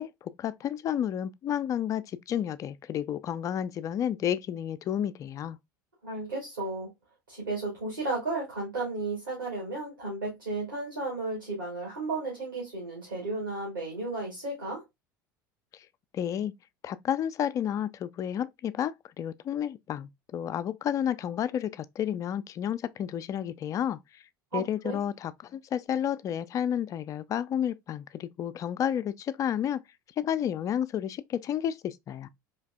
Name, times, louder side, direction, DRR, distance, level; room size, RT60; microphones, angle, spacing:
voice 1, 0.0-5.6 15.7-15.9 16.1-16.5 16.8-24.0 24.5-29.8 30.2-32.3, left 9 dB, 30° left, 0.4 m, -31 dB
voice 2, 6.0-6.9 7.3-14.8 24.5-25.0, right 2 dB, 80° right, 2.3 m, -34 dB
4.4 x 3.2 x 2.2 m
figure-of-eight pair, 70°, 11 cm